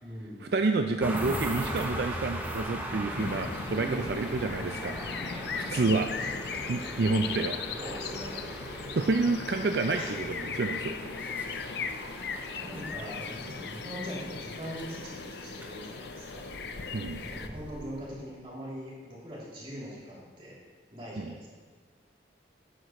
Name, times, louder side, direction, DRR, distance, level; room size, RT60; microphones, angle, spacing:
voice 1, 0.0-0.5 3.8-5.9 7.8-8.4 9.9-10.2 12.6-16.5 17.2-20.6 20.9-21.5, equal, 30° right, -6 dB, 3.0 m, -42 dB
voice 2, 0.5-5.0 5.5-6.1 6.7-7.6 9.0-11.0 16.9-17.2 21.2-21.3, right 3 dB, 65° right, 6 dB, 0.4 m, -29 dB
sound 1, 1.0-18.3, right 1 dB, 10° right, 0.9 m, -40 dB
sound 2, 3.2-17.5, left 5 dB, 65° left, 0.5 m, -38 dB
13.0 x 9.3 x 3.1 m, 1.5 s
head